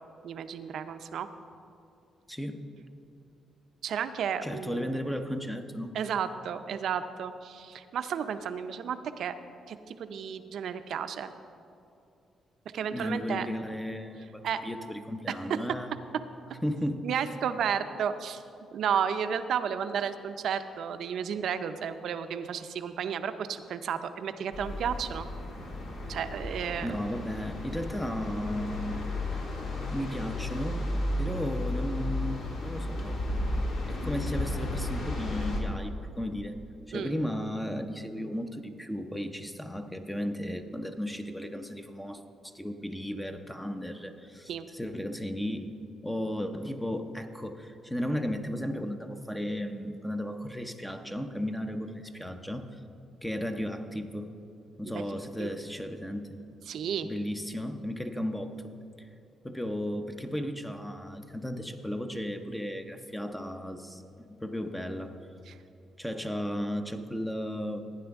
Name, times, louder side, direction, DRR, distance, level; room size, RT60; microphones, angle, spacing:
voice 1, 0.2-1.3 3.8-4.9 5.9-9.3 9.7-11.3 12.7-13.5 14.4-14.6 15.5-15.6 17.0-18.4 18.7-25.3 26.1-26.9 36.9-37.2 44.5-44.6 54.8-55.1 55.4-55.6 56.7-57.1 65.5-65.6, right 8 dB, 70° right, 10 dB, 0.6 m, -32 dB
voice 2, 2.3-2.7 4.4-5.9 12.9-15.9 16.6-17.2 26.8-29.0 29.9-30.9 31.2-33.2 33.9-36.6 36.9-52.8 53.2-54.3 54.8-56.4 57.0-58.7 59.0-59.1 59.4-65.2 66.0-67.8, equal, 5° left, 6 dB, 0.7 m, -35 dB
sound 1, 24.5-35.6, left 1 dB, 70° left, 1.9 m, -33 dB
15.5 x 9.6 x 3.6 m, 2.5 s
cardioid pair, 95°, 0 cm